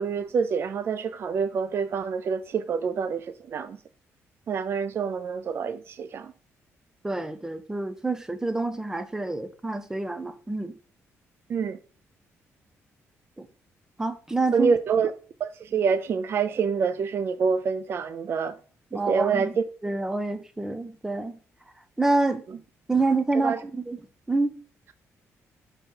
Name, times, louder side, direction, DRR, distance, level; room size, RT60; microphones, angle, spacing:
voice 1, 0.0-3.8 4.5-6.3 11.5-11.8 14.5-15.1 15.4-18.6 18.9-19.6 23.4-23.6, right 6 dB, 45° right, 0.4 m, -26 dB
voice 2, 7.0-10.7 13.4-13.5 14.0-14.7 18.9-19.5 19.8-21.4 22.0-22.4 22.9-24.0 24.3-24.6, right 3 dB, 10° right, 0.8 m, -27 dB
5.8 x 3.9 x 5.4 m
cardioid pair, 120°, 5 cm